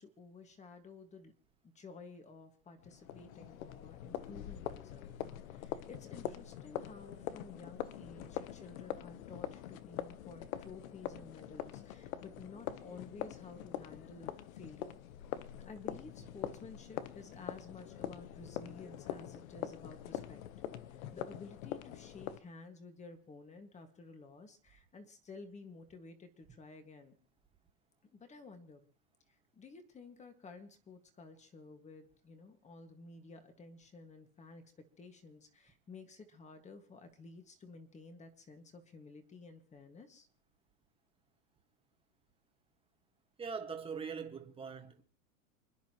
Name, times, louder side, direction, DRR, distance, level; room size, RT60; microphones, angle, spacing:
voice 1, 0.0-1.3 1.6-5.2 5.5-15.0 15.6-20.4 20.9-27.2 28.0-28.9 29.3-40.3, left 4 dB, 15° left, 1.8 m, -53 dB
sound 1, 2.8-22.4, left 11 dB, 70° left, 1.1 m, -44 dB
voice 2, 43.4-45.0, right 6 dB, 15° right, 1.6 m, -42 dB
29.5 x 10.5 x 3.0 m
supercardioid pair, 140°, 43 cm